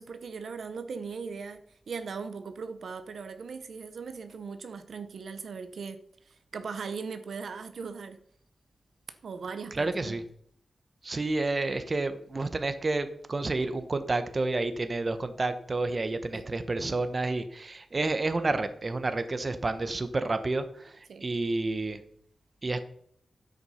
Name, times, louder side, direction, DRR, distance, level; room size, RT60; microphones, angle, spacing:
voice 1, 0.0-1.6 1.9-6.0 6.3-8.2 9.2-10.2 16.3-16.5 21.1-21.2, right 5 dB, 75° right, 9 dB, 0.9 m, -39 dB
voice 2, 9.7-10.2 11.0-22.0 22.6-22.8, right 2 dB, 30° right, 10 dB, 1.0 m, -30 dB
9.8 x 7.9 x 5.6 m, 0.64 s
wide cardioid pair, 140°, 0 cm